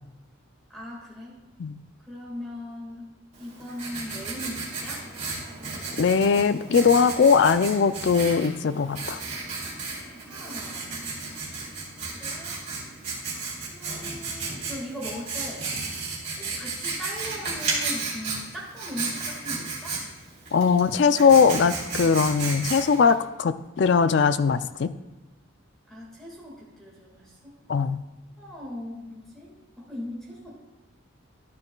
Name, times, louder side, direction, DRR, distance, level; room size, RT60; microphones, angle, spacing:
voice 1, 0.7-1.4 2.1-3.1 3.4-5.0 10.3-10.9 12.1-12.5 13.7-15.6 16.4-20.0 25.9-27.6 28.4-30.5, left 1 dB, ahead, -5 dB, 1.8 m, -39 dB
Writing, 3.3-23.1, right 3 dB, 35° right, 2.9 m, -34 dB
voice 2, 6.0-9.2 20.5-24.9 27.7-28.0, left 5 dB, 60° left, 12 dB, 0.3 m, -20 dB
12.5 x 9.0 x 2.3 m, 1.1 s
head